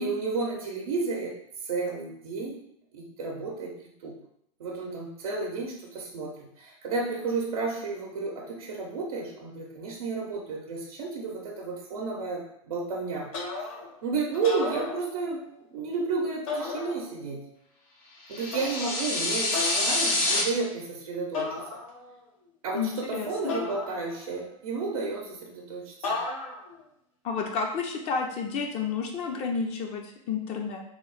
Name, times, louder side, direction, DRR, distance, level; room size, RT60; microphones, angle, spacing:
voice 1, 0.0-1.3 1.6-2.6 2.9-3.8 4.0-4.1 4.6-13.3 14.0-15.4 15.7-17.4 18.3-21.8 22.6-26.2, right 4 dB, 90° right, -3 dB, 0.7 m, -32 dB
sound 1, 13.3-14.0 14.3-15.5 16.5-17.4 18.5-19.0 19.5-20.0 21.3-22.2 23.5-24.5 26.0-26.8, left 4 dB, 70° left, 1.2 m, -35 dB
sound 2, 18.3-20.4, left 2 dB, 90° left, 1.1 m, -26 dB
voice 2, 22.7-23.5 27.2-30.8, left 5 dB, 35° left, 2 dB, 0.4 m, -31 dB
3.1 x 2.0 x 3.9 m, 0.73 s
hypercardioid pair, 125°, 18 cm